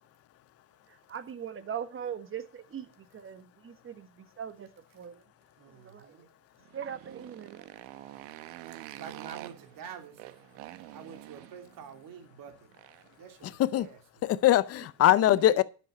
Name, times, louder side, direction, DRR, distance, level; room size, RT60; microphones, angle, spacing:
voice 1, 0.9-4.7 4.9-5.2 5.8-6.2 6.7-7.7 15.2-15.6, right 8 dB, 25° right, 1.5 m, -41 dB
voice 2, 5.6-6.3 9.0-10.2 10.9-12.7 13.2-14.0, right 7 dB, 40° right, 3.0 m, -47 dB
Motorcycle, 6.6-13.2, right 15 dB, 60° right, 1.3 m, -47 dB
voice 3, 14.2-15.6, left 13 dB, 30° left, 0.6 m, -22 dB
10.5 x 7.6 x 5.6 m
supercardioid pair, 130°, 50 cm